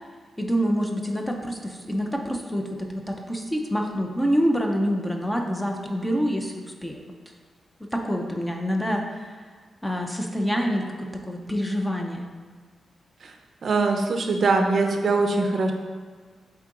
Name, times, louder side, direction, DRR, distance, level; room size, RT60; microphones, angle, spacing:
voice 1, 0.4-7.0 7.9-9.3 9.8-12.3, equal, 5° left, 2 dB, 0.5 m, -26 dB
voice 2, 13.6-15.7, right 3 dB, 45° right, 4 dB, 0.5 m, -22 dB
8.4 x 3.7 x 3.7 m, 1.5 s
wide cardioid pair, 175°, 0 cm